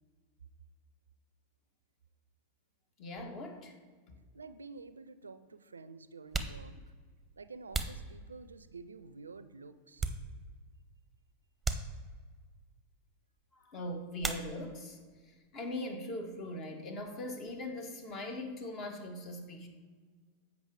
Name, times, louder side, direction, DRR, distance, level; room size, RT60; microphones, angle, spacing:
voice 1, 3.0-3.8 13.6-15.0 15.2-19.7, left 1 dB, 40° left, 4 dB, 1.4 m, -41 dB
voice 2, 4.3-6.7 7.4-10.1, right 4 dB, 90° right, 13 dB, 0.4 m, -49 dB
sound 1, 4.4-4.5 5.5-5.6 6.2-8.8 9.3-10.7 11.0-11.1 11.6-12.4 14.2-15.0 15.2-15.9 16.2-18.4, right 3 dB, 15° right, 0.8 m, -40 dB
8.0 x 5.1 x 4.7 m, 1.5 s
hypercardioid pair, 95°, 0 cm